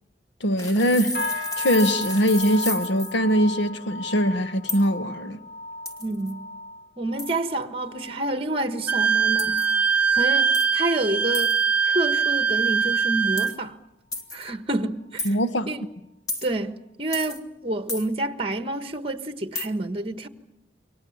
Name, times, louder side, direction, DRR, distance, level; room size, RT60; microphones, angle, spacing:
voice 1, 0.4-1.2 1.6-5.4 15.2-15.7, equal, 80° left, 1.5 m, -22 dB
sound 1, 0.6-3.2 4.7-4.9 5.9-6.3 7.2-7.4 9.4-9.7 10.5-10.8 11.3-11.6 13.4-13.6 14.1-14.5 15.2-15.3 16.3-16.5 17.1-17.4 17.9-18.1 19.6-19.7, left 2 dB, 20° left, 2.1 m, -32 dB
sound 2, 1.1-10.7 11.0-11.4 11.8-12.2 12.7-12.8, left 1 dB, 60° left, 7.8 m, -36 dB
voice 2, 6.0-6.4 7.0-9.6 10.1-11.5 11.8-13.8 14.3-15.3 15.7-15.8 16.4-20.3, right 2 dB, 30° right, 1.3 m, -28 dB
Wind instrument woodwind instrument, 8.9-13.5, right 6 dB, 10° right, 1.0 m, -22 dB
28.5 x 24.0 x 7.2 m
head